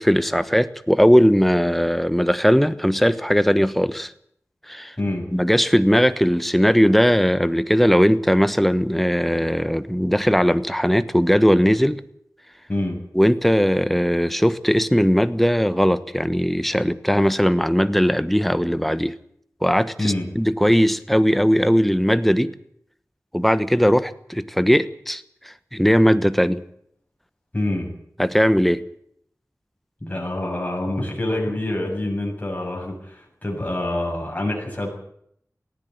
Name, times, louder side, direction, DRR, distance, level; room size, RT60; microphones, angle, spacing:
voice 1, 0.0-4.1 4.7-4.9 5.3-12.0 13.1-19.1 19.6-22.5 23.3-26.6 28.2-28.8, equal, 5° left, 13 dB, 1.2 m, -19 dB
voice 2, 27.5-27.9 30.0-34.9, left 1 dB, 25° left, -1 dB, 7.5 m, -26 dB
18.5 x 15.5 x 9.3 m, 0.68 s
wide cardioid pair, 65°, 6 cm